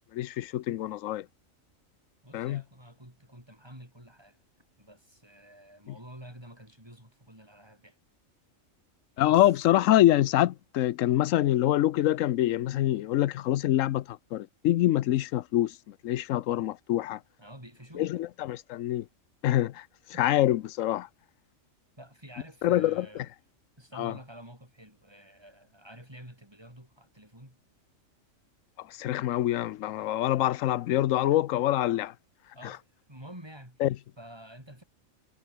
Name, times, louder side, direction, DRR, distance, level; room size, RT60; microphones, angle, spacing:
voice 1, 0.1-1.3 2.3-2.6 5.9-6.0 9.2-17.2 17.9-19.1 19.4-19.9 20.2-21.1 22.6-23.2 24.0-24.1 28.8-32.1 32.6-32.8 33.8-34.0, left 13 dB, 75° left, 1.0 m, -25 dB
voice 2, 2.2-4.4 4.8-8.0 9.3-9.5 17.4-18.1 20.1-20.2 22.0-23.3 23.8-27.6 32.5-33.8 34.2-34.8, right 1 dB, 20° right, 8.1 m, -49 dB
omnidirectional pair, 1.4 m